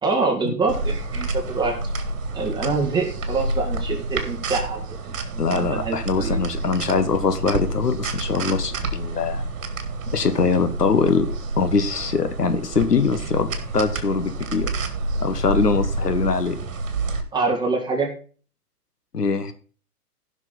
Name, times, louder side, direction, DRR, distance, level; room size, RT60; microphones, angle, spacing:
voice 1, 0.0-1.7 2.3-4.8 5.1-6.4 17.3-18.1, right 4 dB, 10° right, 0 dB, 1.9 m, -25 dB
sound 1, 0.7-17.2, right 2 dB, 55° right, 2.0 m, -29 dB
voice 2, 5.4-9.4 10.1-11.3 11.6-13.5 13.7-14.7 15.2-16.6 19.1-19.5, left 5 dB, 75° left, 9 dB, 1.4 m, -22 dB
15.0 x 6.0 x 4.0 m, 0.39 s
figure-of-eight pair, 120°, 47 cm